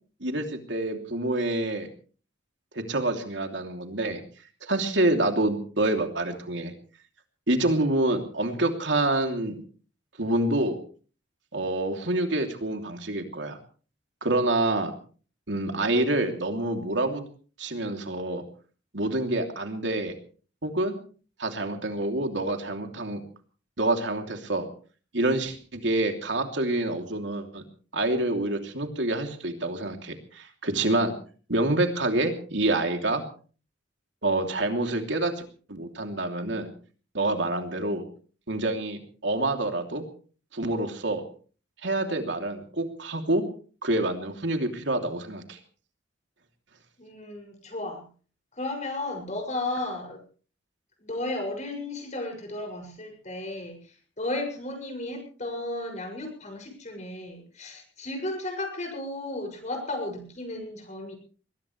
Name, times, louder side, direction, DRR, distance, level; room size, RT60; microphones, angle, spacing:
voice 1, 0.2-1.9 2.7-4.2 4.6-6.7 7.5-9.6 10.2-10.8 11.5-13.6 14.2-14.9 15.5-17.2 17.6-18.4 18.9-20.1 20.6-20.9 21.4-23.2 23.8-24.7 25.1-27.6 27.9-31.1 31.5-33.2 34.2-35.3 35.7-36.7 37.1-38.0 38.5-40.0 40.5-41.2 41.8-43.4 43.8-45.6, right 2 dB, 75° right, 5 dB, 3.1 m, -27 dB
voice 2, 47.0-48.0 48.5-50.2 51.0-61.1, left 2 dB, 40° left, 3 dB, 6.8 m, -34 dB
21.5 x 20.5 x 3.3 m, 0.40 s
head